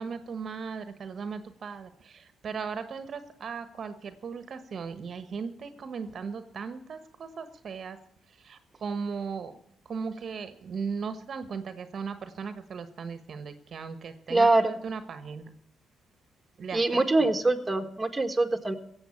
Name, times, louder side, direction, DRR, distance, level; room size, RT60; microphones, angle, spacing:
voice 1, 0.0-8.0 8.3-9.6 9.8-15.5 16.6-17.0, right 5 dB, 50° right, 10 dB, 1.2 m, -37 dB
voice 2, 14.3-14.8 16.7-18.7, right 2 dB, 15° right, 5 dB, 1.6 m, -24 dB
16.0 x 8.0 x 8.5 m, 0.74 s
cardioid pair, 90°, 0 cm